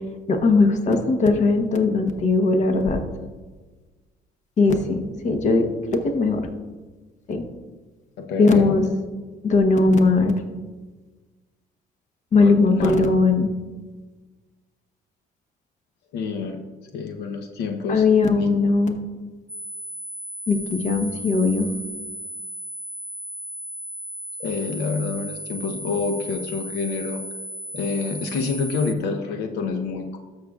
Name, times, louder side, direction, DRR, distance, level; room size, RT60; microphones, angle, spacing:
voice 1, 0.3-3.0 4.6-5.7 6.0-6.4 7.3-7.4 8.4-8.9 9.4-10.3 12.3-13.5 17.9-19.0 20.5-21.7, left 3 dB, 45° left, 6 dB, 1.0 m, -19 dB
voice 2, 8.2-8.7 12.4-13.0 16.1-16.7 16.9-18.0 18.3-18.5 24.4-27.2 27.7-30.2, left 4 dB, 80° left, 5 dB, 0.8 m, -27 dB
sound 1, 19.5-28.9, equal, 5° right, 0.6 m, -35 dB
13.0 x 6.5 x 2.4 m, 1.3 s
cardioid pair, 110°, 17 cm